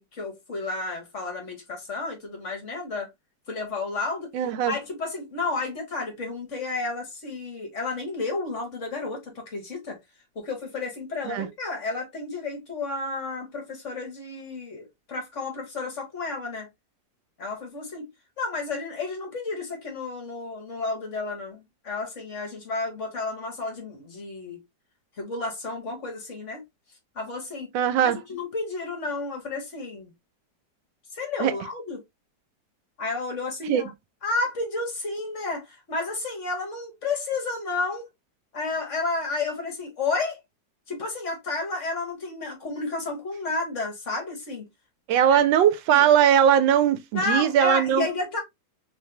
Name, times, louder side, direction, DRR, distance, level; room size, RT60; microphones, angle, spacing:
voice 1, 0.0-3.1 3.5-4.3 4.7-10.0 10.3-16.7 17.4-18.1 18.4-24.6 25.2-26.6 27.1-27.7 28.0-30.1 31.1-32.0 33.0-33.9 34.2-38.0 38.5-40.4 40.9-44.6 45.3-45.4 45.9-46.1 47.1-48.4, left 3 dB, 45° left, 1.4 m, -31 dB
voice 2, 4.3-4.7 11.3-11.5 27.7-28.2 31.4-31.5 33.7-33.8 45.1-48.1, right 9 dB, 85° right, 1.4 m, -20 dB
3.3 x 3.3 x 2.8 m
omnidirectional pair, 2.0 m